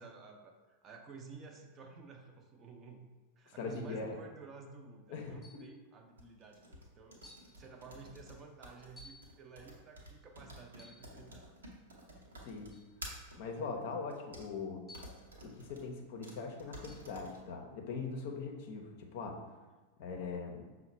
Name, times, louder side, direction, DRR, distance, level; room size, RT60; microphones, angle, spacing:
voice 1, 0.0-3.1 3.4-7.2 7.6-11.5 13.5-13.8 19.7-19.8, right 4 dB, 25° right, 3 dB, 0.5 m, -53 dB
voice 2, 3.6-4.2 5.1-5.4 12.5-12.8 13.4-14.8 15.4-19.3 20.0-20.7, left 4 dB, 50° left, 2 dB, 0.6 m, -41 dB
sound 1, 3.7-4.0 5.4-5.7 6.5-6.6 7.2-7.5 9.0-9.3 10.7-11.1 12.7-12.9 14.9-15.3 16.9-17.1, left 2 dB, 5° left, 0.8 m, -57 dB
sound 2, 6.2-13.4 14.1-14.5 14.9-15.8 16.2-16.3 16.6-17.4, right 1 dB, 75° right, 0.8 m, -51 dB
5.5 x 2.1 x 4.2 m, 1.3 s
figure-of-eight pair, 90°, 0 cm